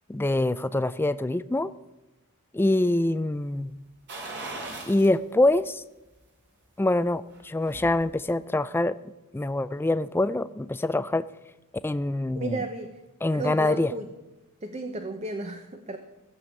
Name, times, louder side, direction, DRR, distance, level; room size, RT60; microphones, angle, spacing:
voice 1, 0.1-1.7 2.5-3.7 4.9-5.8 6.8-8.9 9.3-11.2 11.8-12.6 13.2-13.9, left 2 dB, 10° left, 15 dB, 0.3 m, -25 dB
sound 1, 4.1-5.2 5.6-5.7 7.2-8.0 8.3-8.4, right 2 dB, 50° right, 2.8 m, -38 dB
voice 2, 12.3-13.0 13.3-14.1 14.6-16.0, right 3 dB, 30° right, 7 dB, 0.8 m, -34 dB
15.5 x 6.9 x 7.3 m, 1.0 s
head